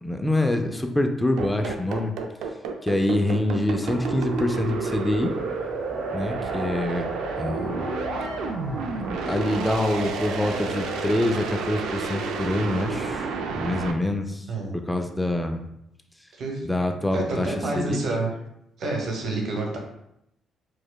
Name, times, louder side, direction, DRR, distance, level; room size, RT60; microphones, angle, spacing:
voice 1, 0.0-2.1 2.8-5.3 6.1-7.9 8.9-14.5 14.7-15.7 16.6-18.0, left 1 dB, 10° left, 5 dB, 0.3 m, -26 dB
sound 1, 1.4-13.9, right 4 dB, 85° right, 0.3 m, -30 dB
sound 2, 3.8-11.4, equal, 15° right, 1.0 m, -38 dB
voice 2, 17.1-18.3 18.8-19.8, right 2 dB, 65° right, 0 dB, 0.9 m, -28 dB
4.7 x 2.1 x 2.2 m, 0.79 s
cardioid pair, 90°, 0 cm